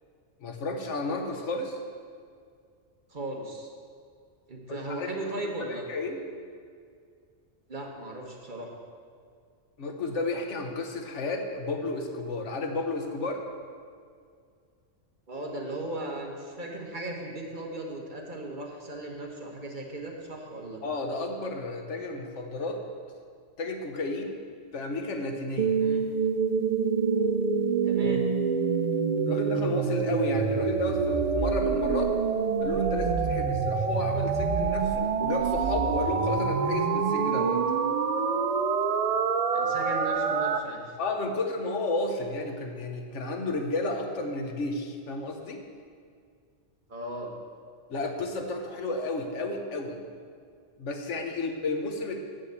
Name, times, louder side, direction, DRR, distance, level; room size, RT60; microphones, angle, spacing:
voice 1, 0.4-1.8 4.7-5.1 5.6-6.2 9.8-13.4 20.8-22.8 23.6-24.4 24.7-25.8 29.3-32.1 32.6-37.6 41.0-45.6 47.9-50.0 50.8-52.2, left 2 dB, 75° left, 4 dB, 1.2 m, -32 dB
voice 2, 3.1-3.7 4.5-5.8 7.7-8.7 15.3-20.8 25.8-26.0 27.8-28.2 39.5-41.0 46.9-47.3, right 2 dB, 45° right, 0 dB, 1.3 m, -37 dB
sound 1, 25.6-40.6, right 5 dB, 75° right, 0.3 m, -26 dB
7.5 x 6.4 x 7.8 m, 2.2 s
omnidirectional pair, 1.2 m